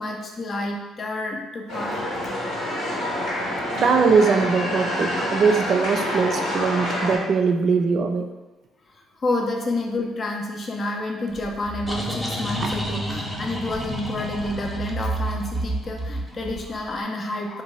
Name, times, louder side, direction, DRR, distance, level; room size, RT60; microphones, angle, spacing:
voice 1, 0.0-2.0 9.2-17.6, left 2 dB, 45° left, 1 dB, 0.4 m, -29 dB
sound 1, 1.7-7.2, left 1 dB, 85° left, 0.9 m, -27 dB
voice 2, 3.7-8.3 12.6-12.7, right 5 dB, 55° right, 4 dB, 0.4 m, -21 dB
sound 2, 11.4-16.9, right 1 dB, ahead, 0.7 m, -29 dB
2.8 x 2.2 x 3.1 m, 1.1 s
hypercardioid pair, 55°, 0 cm